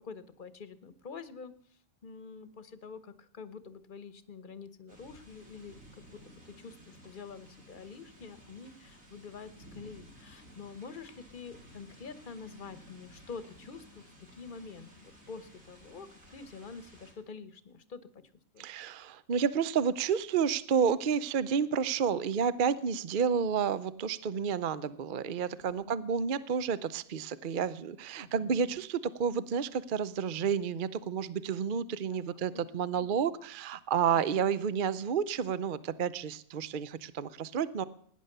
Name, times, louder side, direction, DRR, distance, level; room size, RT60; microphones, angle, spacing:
voice 1, 0.0-1.5 2.0-14.1 14.3-18.2 18.5-18.7 25.5-25.9 28.2-28.8 32.1-32.6 32.9-33.1 34.1-34.5, left 5 dB, 40° left, 14 dB, 1.1 m, -47 dB
sound 1, 4.9-17.1, equal, 80° right, 4.7 m, -55 dB
voice 2, 18.6-37.8, right 7 dB, 50° right, 16 dB, 0.7 m, -30 dB
17.5 x 10.0 x 6.7 m, 0.64 s
omnidirectional pair, 1.4 m